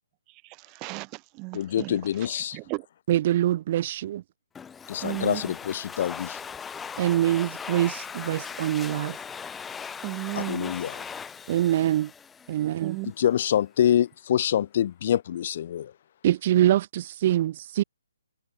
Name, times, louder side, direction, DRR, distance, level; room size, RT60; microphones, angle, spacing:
voice 1, 0.3-2.9 5.0-5.5 10.0-10.7 12.8-13.1, right 29 dB, 25° right, 1.0 m, -35 dB
voice 2, 1.5-2.6 4.9-6.4 10.5-10.9 13.2-15.9, left 10 dB, 45° left, 1.1 m, -25 dB
voice 3, 3.1-4.2 7.0-9.2 11.5-12.1 12.5-13.0 16.2-17.8, right 12 dB, 40° right, 0.6 m, -24 dB
Domestic sounds home sounds, 4.5-13.0, left 6 dB, 10° left, 0.7 m, -39 dB
figure-of-eight pair, 140°, 0 cm